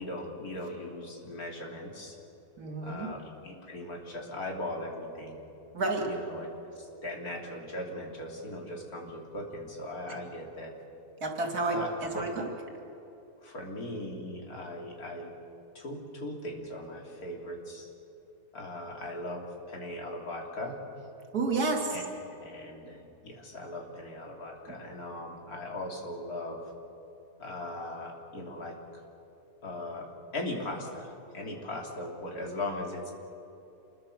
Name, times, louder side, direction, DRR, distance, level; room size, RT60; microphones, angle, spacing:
voice 1, 0.0-2.2 2.8-5.4 6.0-6.5 6.8-10.7 11.7-12.2 13.4-15.3 15.8-17.9 18.5-20.8 21.9-22.0 22.3-23.0 23.2-26.6 27.4-28.8 29.6-30.1 30.3-33.1, left 1 dB, 70° left, 0 dB, 3.6 m, -39 dB
voice 2, 2.6-3.1 5.7-6.1 11.2-12.5 21.3-22.0 24.7-24.8, right 3 dB, 75° right, 2 dB, 3.3 m, -30 dB
27.0 x 21.5 x 6.6 m, 2.8 s
omnidirectional pair, 1.6 m